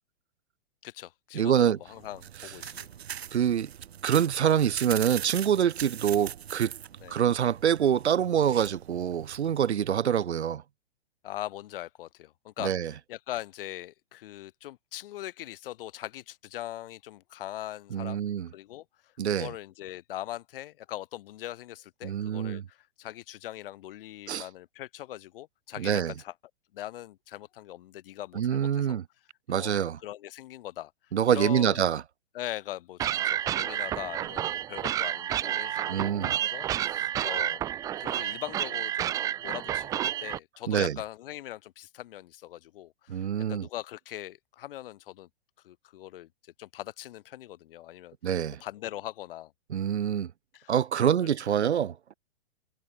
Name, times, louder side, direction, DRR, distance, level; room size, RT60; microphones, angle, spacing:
voice 1, 0.8-2.9 7.0-7.2 11.2-12.7 13.1-18.2 18.5-26.3 26.7-29.0 29.5-30.9 31.3-31.9 32.3-37.6 38.0-39.2 39.4-45.3 45.6-46.3 46.6-48.2 48.6-49.5 50.5-51.1, left 14 dB, 55° left, 3.2 m, -41 dB
voice 2, 1.3-1.8 3.3-3.7 4.0-6.7 7.1-10.6 12.6-12.9 17.9-18.5 19.2-19.5 22.0-22.6 24.3-24.4 25.8-26.1 28.4-29.0 29.5-30.0 31.1-32.0 35.9-36.3 40.7-41.0 43.1-43.7 48.2-48.6 49.7-50.3 50.7-52.0, right 9 dB, 85° right, 0.8 m, -25 dB
sound 1, 1.9-9.8, right 9 dB, 70° right, 4.9 m, -41 dB
sound 2, 33.0-40.4, right 12 dB, 10° right, 0.4 m, -30 dB
hypercardioid pair, 120°, 33 cm